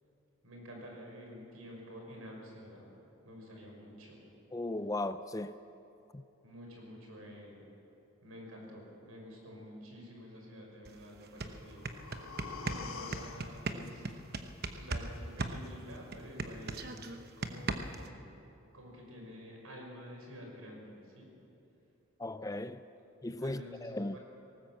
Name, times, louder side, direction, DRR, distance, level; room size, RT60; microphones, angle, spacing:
voice 1, 0.4-3.0 3.2-4.2 6.4-7.7 8.2-11.8 12.6-14.1 14.7-18.2 18.7-21.4 23.0-23.1 23.4-24.2, equal, 80° right, 5.8 m, -49 dB
voice 2, 4.5-5.6 6.1-6.2 22.2-22.8 23.2-24.2, left 2 dB, 15° left, 0.4 m, -37 dB
sound 1, 10.9-11.0 11.2-15.1 15.4-18.1, right 3 dB, 45° right, 1.0 m, -37 dB
sound 2, 11.3-15.3 15.7-15.8, left 5 dB, 70° left, 1.3 m, -48 dB
19.0 x 18.0 x 7.8 m
head